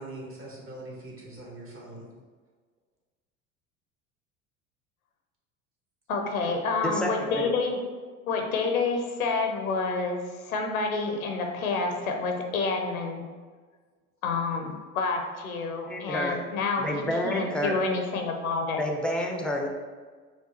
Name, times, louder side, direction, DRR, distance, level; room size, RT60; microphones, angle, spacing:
voice 1, 0.0-2.1, right 2 dB, 30° right, -3 dB, 1.2 m, -42 dB
voice 2, 6.1-7.8 8.3-13.2 14.2-18.8, left 4 dB, 90° left, 3 dB, 0.6 m, -28 dB
voice 3, 6.8-7.5 15.9-16.4 16.8-17.8 18.8-19.7, left 1 dB, ahead, 1 dB, 0.4 m, -29 dB
4.6 x 2.2 x 2.8 m, 1.5 s
hypercardioid pair, 70°, 41 cm